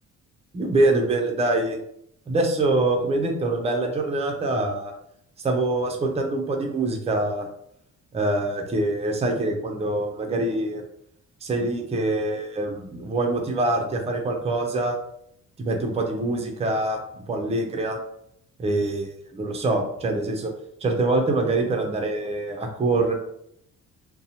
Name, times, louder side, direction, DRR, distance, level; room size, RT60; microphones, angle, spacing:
voice 1, 0.5-1.8 2.3-4.9 5.4-7.5 8.1-10.8 11.4-15.0 15.6-18.0 18.6-20.5 20.8-23.1, right 2 dB, 20° right, 3 dB, 0.5 m, -24 dB
2.6 x 2.0 x 2.7 m, 0.72 s
cardioid pair, 90°, 30 cm